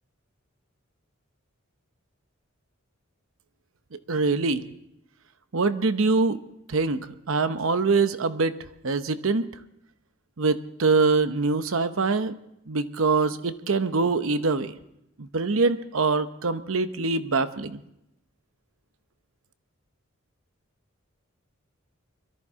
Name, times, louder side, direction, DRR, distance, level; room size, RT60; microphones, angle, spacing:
voice 1, 4.1-4.6 5.5-6.4 6.7-7.0 7.3-8.5 8.8-9.5 10.4-12.4 12.7-14.7 15.2-17.8, right 4 dB, 75° right, 11 dB, 0.8 m, -24 dB
22.0 x 14.0 x 3.6 m, 0.79 s
head